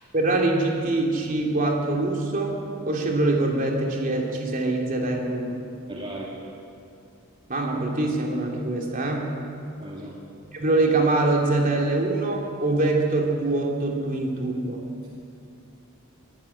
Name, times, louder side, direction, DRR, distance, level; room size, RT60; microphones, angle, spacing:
voice 1, 0.1-2.6 2.9-5.6 7.5-9.3 10.5-14.8, right 2 dB, 40° right, 0 dB, 3.1 m, -24 dB
voice 2, 5.9-6.3 9.8-10.1, right 1 dB, 25° right, -4 dB, 2.4 m, -36 dB
23.5 x 12.0 x 10.0 m, 2.5 s
head